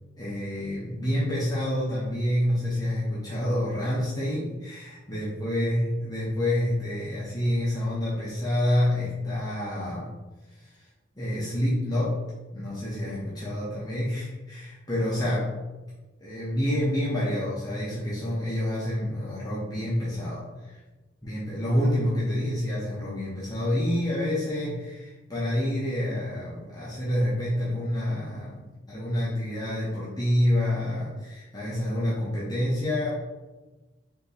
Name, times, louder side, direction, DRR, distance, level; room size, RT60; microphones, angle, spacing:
voice 1, 0.2-10.1 10.6-10.8 11.2-12.2 12.5-15.5 16.2-20.8 21.2-33.1, left 1 dB, 20° left, -8 dB, 0.8 m, -28 dB
3.6 x 2.8 x 3.9 m, 1.2 s
head